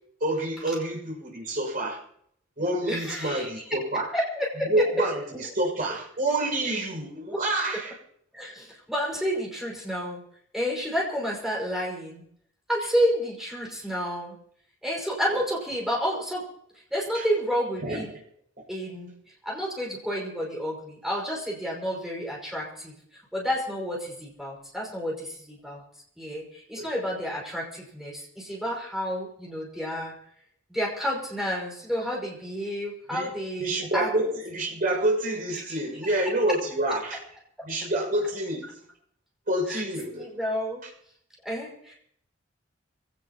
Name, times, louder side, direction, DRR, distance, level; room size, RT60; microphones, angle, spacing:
voice 1, 0.2-2.0 2.6-4.1 4.6-7.9 15.3-15.4 17.1-17.2 17.8-18.2 26.7-26.9 33.1-33.3 33.6-37.2 37.6-38.8 39.5-40.3, right 1 dB, 45° right, -1 dB, 6.3 m, -28 dB
voice 2, 2.8-3.5 3.9-4.7 7.3-7.4 8.3-10.2 10.5-12.2 12.7-14.4 14.8-16.5 16.9-18.1 18.7-19.1 19.4-22.9 23.3-25.8 26.2-30.1 30.7-34.1 39.7-39.8 40.1-40.8 41.4-41.9, equal, ahead, -3 dB, 5.5 m, -30 dB
24.5 x 17.5 x 3.0 m, 0.67 s
head